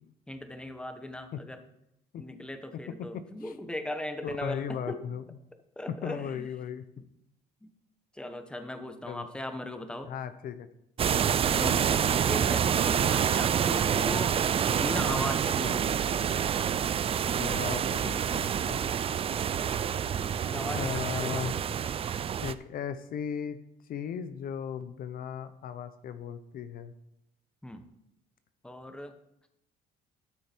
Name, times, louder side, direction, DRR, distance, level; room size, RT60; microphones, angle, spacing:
voice 1, 0.3-1.6 2.2-5.0 5.8-6.5 7.0-7.1 7.6-7.7 8.1-10.1 11.6-11.9 12.2-14.4 14.6-16.1 19.1-19.3 20.4-21.7 27.6-27.8 28.6-29.1, left 1 dB, 5° left, 8 dB, 1.0 m, -38 dB
voice 2, 4.4-5.2 5.9-6.8 9.1-9.3 10.1-10.7 11.1-11.4 17.2-18.8 20.7-21.6 22.4-23.6 23.9-26.9, left 8 dB, 60° left, 12 dB, 0.7 m, -36 dB
sound 1, 11.0-22.5, right 8 dB, 35° right, 0.4 m, -27 dB
13.0 x 6.5 x 4.5 m, 0.80 s
cardioid pair, 110°, 17 cm